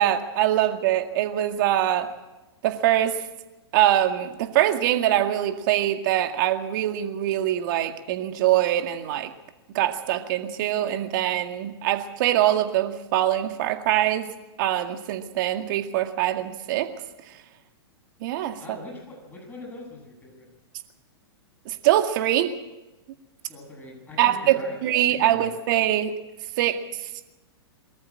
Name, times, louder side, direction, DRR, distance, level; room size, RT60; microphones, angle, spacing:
voice 1, 0.0-2.1 2.6-3.2 3.7-9.3 9.7-14.3 14.6-16.9 18.2-18.6 21.7-22.5 24.2-26.1 26.6-26.8, right 12 dB, 50° right, 6 dB, 2.0 m, -23 dB
voice 2, 18.6-20.5 23.5-25.5, left 2 dB, 15° left, 0 dB, 8.0 m, -42 dB
23.0 x 13.5 x 8.6 m, 1.1 s
figure-of-eight pair, 110°, 13 cm